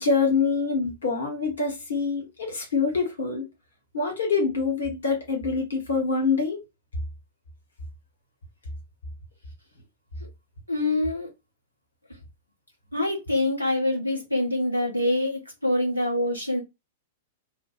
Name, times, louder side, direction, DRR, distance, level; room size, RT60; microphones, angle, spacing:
voice 1, 0.0-3.5 3.9-6.6, left 4 dB, 65° left, 1.2 m, -25 dB
voice 2, 10.7-11.3 12.9-16.6, left 1 dB, 90° left, 1.2 m, -25 dB
3.3 x 2.2 x 3.1 m
figure-of-eight pair, 100°, 0 cm